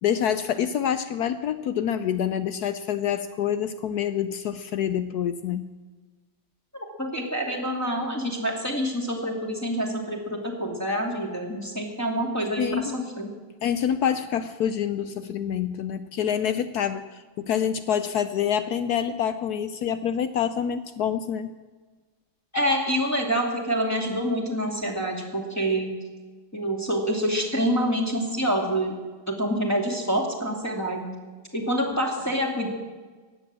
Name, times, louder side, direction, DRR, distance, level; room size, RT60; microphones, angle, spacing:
voice 1, 0.0-5.7 12.6-13.0 13.6-21.5 31.9-32.0, left 9 dB, 70° left, 12 dB, 0.9 m, -27 dB
voice 2, 6.7-13.3 22.5-25.9 26.5-29.0 29.3-31.1 31.5-32.7, equal, 10° left, 0 dB, 2.3 m, -27 dB
16.0 x 10.0 x 7.5 m, 1.3 s
omnidirectional pair, 2.2 m